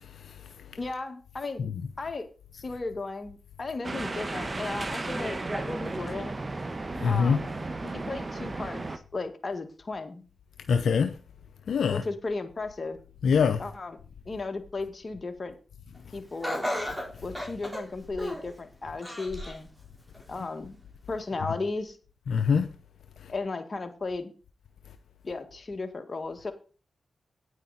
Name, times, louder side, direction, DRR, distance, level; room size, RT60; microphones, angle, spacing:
voice 1, 0.8-1.6 2.0-2.3 2.5-6.4 7.0-7.4 7.8-8.8 9.1-10.2 11.9-13.0 13.6-14.0 14.3-15.6 16.1-16.7 17.2-19.7 20.3-20.8 21.1-22.0 23.3-24.3 25.2-26.5, left 3 dB, 45° left, 1.8 m, -35 dB
sound 1, 3.8-9.0, right 2 dB, 40° right, 1.3 m, -34 dB
voice 2, 7.0-7.4 10.7-11.1 11.7-12.0 13.2-13.6 22.3-22.6, left 6 dB, 80° left, 0.6 m, -23 dB
Laughter, 16.4-18.5 19.0-19.7 20.1-20.2 21.2-21.3, equal, 5° right, 3.9 m, -34 dB
9.4 x 8.4 x 4.1 m
cardioid pair, 50°, 0 cm